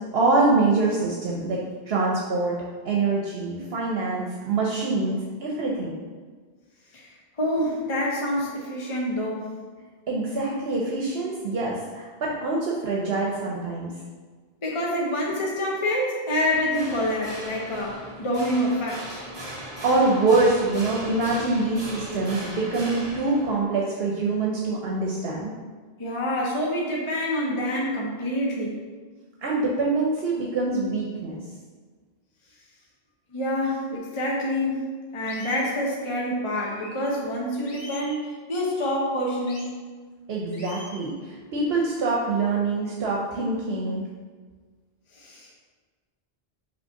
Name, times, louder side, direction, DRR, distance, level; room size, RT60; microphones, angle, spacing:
voice 1, 0.0-2.5 2.8-6.0 10.1-13.9 19.8-25.5 29.4-31.4 40.3-44.0, right 3 dB, 75° right, -3 dB, 1.0 m, -25 dB
voice 2, 7.4-9.5 14.6-19.2 26.0-28.7 33.3-34.9 35.1-39.7 45.1-45.6, left 1 dB, 30° left, -3 dB, 0.9 m, -27 dB
sound 1, 16.4-23.6, right 1 dB, 30° right, 0.8 m, -38 dB
sound 2, 33.9-34.0 34.6-34.7 35.3-35.7 36.5-37.0 37.7-38.2 39.5-39.7 40.5-41.1, left 1 dB, 55° left, 1.1 m, -44 dB
5.4 x 3.1 x 5.6 m, 1.5 s
omnidirectional pair, 1.0 m